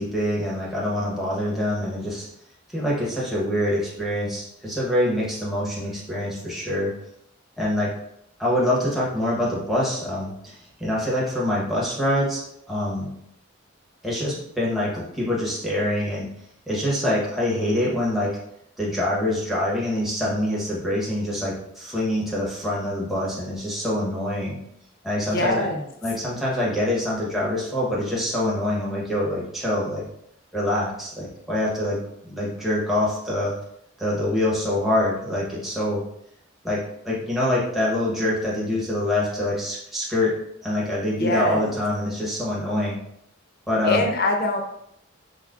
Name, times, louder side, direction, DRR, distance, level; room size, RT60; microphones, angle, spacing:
voice 1, 0.0-2.3 2.7-6.9 7.6-7.9 8.4-13.1 14.0-16.3 16.7-18.4 18.8-24.6 25.0-25.7 26.0-30.0 30.5-33.5 34.0-36.0 36.6-40.4 40.6-43.0 43.7-44.0, left 1 dB, ahead, -7 dB, 1.0 m, -25 dB
voice 2, 25.3-25.8 41.2-41.7 43.8-44.6, left 2 dB, 50° left, 3 dB, 0.6 m, -23 dB
5.9 x 2.1 x 2.4 m, 0.74 s
head